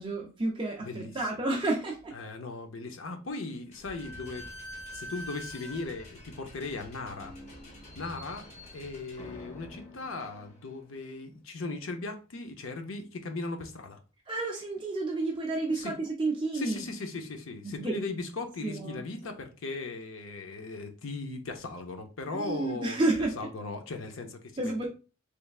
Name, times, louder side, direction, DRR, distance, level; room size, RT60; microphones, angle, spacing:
voice 1, 0.0-2.1 14.3-16.8 17.6-18.1 18.6-19.0 22.3-23.5 24.6-24.9, right 2 dB, 25° right, 0.4 m, -31 dB
voice 2, 0.8-1.1 2.1-4.5 4.9-7.3 8.0-8.4 8.7-14.0 15.8-15.9 16.5-23.0 23.4-24.9, left 3 dB, 70° left, 0.6 m, -38 dB
Slam / Squeak, 3.7-11.0, left 1 dB, 35° left, 0.8 m, -46 dB
3.3 x 3.2 x 2.3 m
head